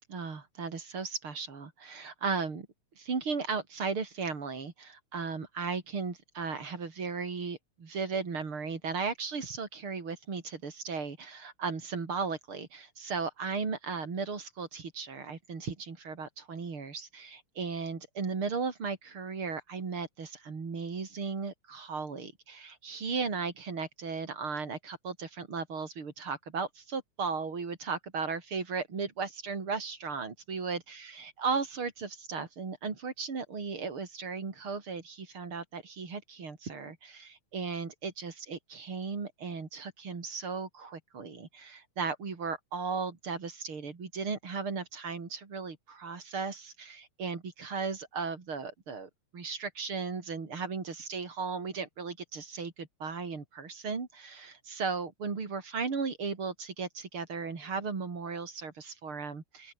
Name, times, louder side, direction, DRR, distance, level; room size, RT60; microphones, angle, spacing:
voice 1, 0.1-2.7 3.0-30.8 31.4-59.7, right 5 dB, 45° right, 4.2 m, -36 dB
open air
omnidirectional pair, 3.5 m